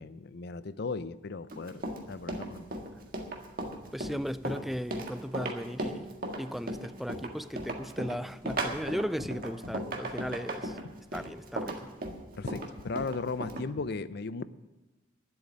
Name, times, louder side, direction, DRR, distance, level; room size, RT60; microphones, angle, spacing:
voice 1, 0.0-2.7 12.3-14.4, left 4 dB, 55° left, 15 dB, 0.5 m, -36 dB
Run, 1.5-13.6, right 1 dB, 50° right, 1.7 m, -36 dB
voice 2, 3.9-10.8 11.1-11.9, equal, ahead, 15 dB, 0.3 m, -36 dB
10.5 x 8.0 x 10.0 m, 1.1 s
head